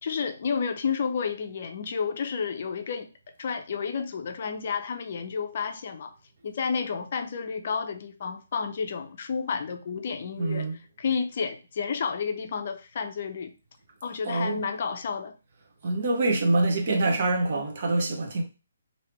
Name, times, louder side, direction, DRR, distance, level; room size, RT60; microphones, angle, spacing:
voice 1, 0.0-3.1 3.4-6.1 6.4-10.7 11.0-13.5 14.0-15.4, left 6 dB, 50° left, 0.5 m, -31 dB
voice 2, 10.4-10.8 14.2-14.6 15.8-18.4, right 2 dB, 50° right, 1.0 m, -25 dB
3.2 x 2.7 x 3.1 m
figure-of-eight pair, 140°, 0 cm